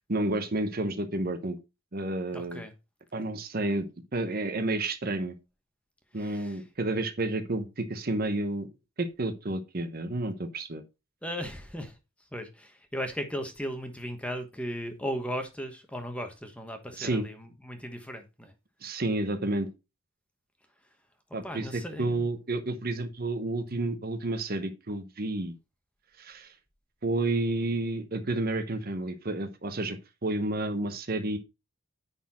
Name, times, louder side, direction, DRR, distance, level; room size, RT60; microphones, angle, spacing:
voice 1, 0.1-1.6 1.9-2.6 3.1-5.4 6.1-8.7 9.0-10.8 17.0-17.3 18.8-19.7 21.3-25.5 26.2-26.5 27.0-31.4, right 2 dB, 45° right, 0.9 m, -30 dB
voice 2, 2.3-2.7 6.1-6.6 11.2-12.0 12.3-18.5 21.4-22.3, equal, 5° left, 1.2 m, -37 dB
10.0 x 4.3 x 4.3 m
head